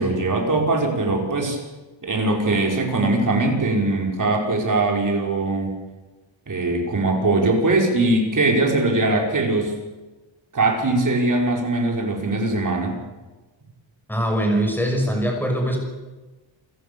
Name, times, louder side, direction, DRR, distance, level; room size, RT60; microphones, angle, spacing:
voice 1, 0.0-1.6 2.0-5.8 6.5-9.8 10.5-13.0, right 2 dB, 40° right, 1 dB, 5.2 m, -21 dB
voice 2, 14.1-15.8, right 1 dB, 5° left, 2 dB, 6.1 m, -22 dB
28.0 x 16.5 x 6.9 m, 1.2 s
wide cardioid pair, 160°, 47 cm